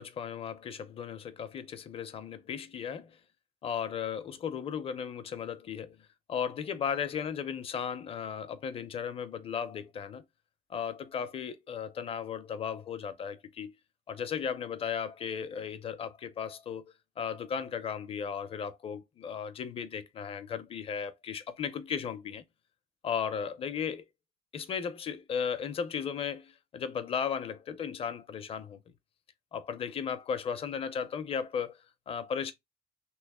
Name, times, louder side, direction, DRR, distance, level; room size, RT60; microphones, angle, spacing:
voice 1, 0.0-3.2 3.6-10.2 10.7-13.7 14.1-22.4 23.0-24.0 24.5-28.8 29.5-32.5, left 7 dB, 40° left, 0.5 m, -36 dB
3.1 x 3.1 x 3.5 m
cardioid pair, 150°, 15 cm